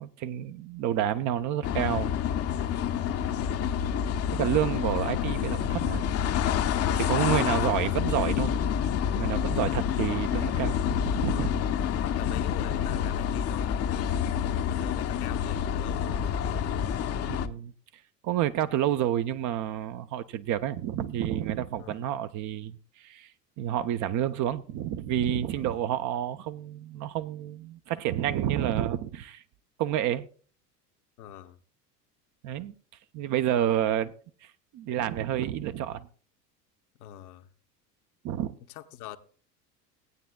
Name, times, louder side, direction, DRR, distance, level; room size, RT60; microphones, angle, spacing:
voice 1, 0.0-2.1 4.3-6.1 7.0-8.5 9.1-11.6 17.3-17.7 18.2-23.3 23.6-29.4 29.8-30.3 32.4-32.7 33.1-34.1 34.4-36.1 38.2-38.6, right 11 dB, 40° right, 0.6 m, -29 dB
sound 1, 1.6-17.5, left 9 dB, 30° left, 0.7 m, -28 dB
voice 2, 12.0-14.1 14.7-17.1 21.8-22.1 25.6-25.8 31.2-31.6 33.7-33.8 37.0-37.5 38.7-39.2, left 12 dB, 65° left, 1.0 m, -44 dB
17.5 x 9.1 x 2.3 m
figure-of-eight pair, 70°, 48 cm